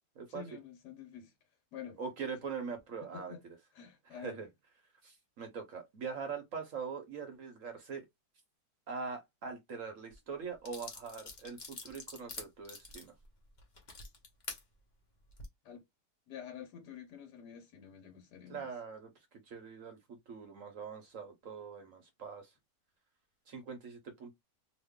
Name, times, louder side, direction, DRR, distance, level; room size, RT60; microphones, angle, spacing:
voice 1, 0.3-1.3 1.7-2.0 3.0-3.4 3.7-4.5 15.6-15.8 16.3-18.7, left 8 dB, 65° left, 1.3 m, -48 dB
voice 2, 2.0-3.3 4.1-4.5 5.0-8.1 8.9-13.1 18.5-22.5 23.5-24.3, right 5 dB, 55° right, 1.0 m, -43 dB
sound 1, 10.1-10.2 10.6-14.6 15.2-15.5, left 3 dB, 40° left, 0.6 m, -46 dB
3.0 x 2.3 x 3.5 m
omnidirectional pair, 2.0 m